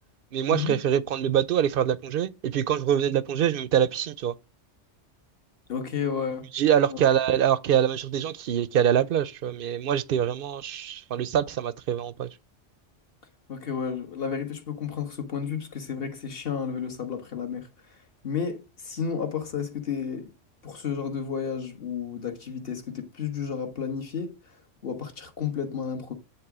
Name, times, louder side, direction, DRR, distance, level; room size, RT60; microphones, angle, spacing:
voice 1, 0.3-4.3 6.5-12.3, right 9 dB, 60° right, 0.7 m, -24 dB
voice 2, 5.7-6.5 6.9-7.0 13.5-18.0 18.2-20.3 20.6-26.1, left 6 dB, 50° left, 1.6 m, -32 dB
9.6 x 3.6 x 6.0 m
omnidirectional pair, 1.2 m